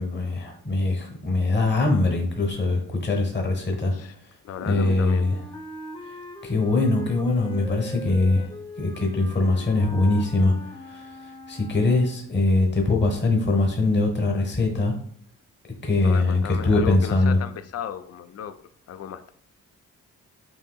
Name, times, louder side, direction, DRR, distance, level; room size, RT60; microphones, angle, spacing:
voice 1, 0.0-3.9 4.6-5.4 6.4-8.5 8.8-10.5 10.9-11.0 11.5-14.9 15.8-17.4, left 2 dB, 35° left, 2 dB, 1.0 m, -22 dB
voice 2, 4.4-5.4 16.0-18.5 18.9-19.3, left 9 dB, 50° left, 11 dB, 0.4 m, -35 dB
Wind instrument woodwind instrument, 4.6-12.3, left 2 dB, 15° left, 0.7 m, -41 dB
5.3 x 2.7 x 2.3 m, 0.63 s
cardioid pair, 55°, 34 cm